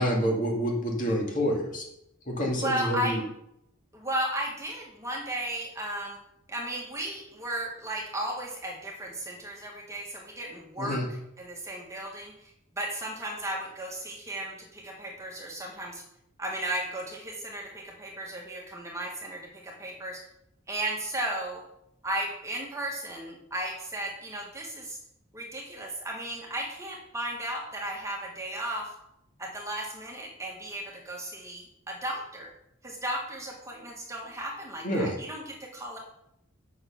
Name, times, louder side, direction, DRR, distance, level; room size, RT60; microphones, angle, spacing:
voice 1, 0.0-1.8 2.3-3.2 10.8-11.0 34.8-35.1, equal, 40° left, -1 dB, 2.3 m, -27 dB
voice 2, 2.6-3.2 3.9-6.2 6.5-12.5 12.7-16.0 16.4-20.2 20.7-21.6 22.0-25.0 25.3-28.9 29.4-32.5 32.8-36.0, right 1 dB, 15° right, -1 dB, 1.5 m, -35 dB
7.8 x 6.2 x 5.9 m, 0.80 s
head